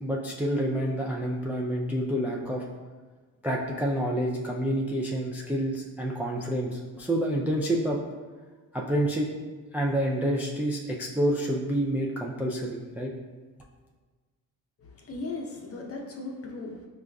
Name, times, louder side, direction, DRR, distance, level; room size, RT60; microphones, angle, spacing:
voice 1, 0.0-2.6 3.4-8.0 8.7-9.3 9.7-13.1, right 1 dB, 5° right, -2 dB, 0.3 m, -28 dB
voice 2, 14.8-16.9, left 3 dB, 40° left, 0 dB, 0.7 m, -37 dB
4.9 x 2.4 x 2.3 m, 1.4 s
supercardioid pair, 70°, 35 cm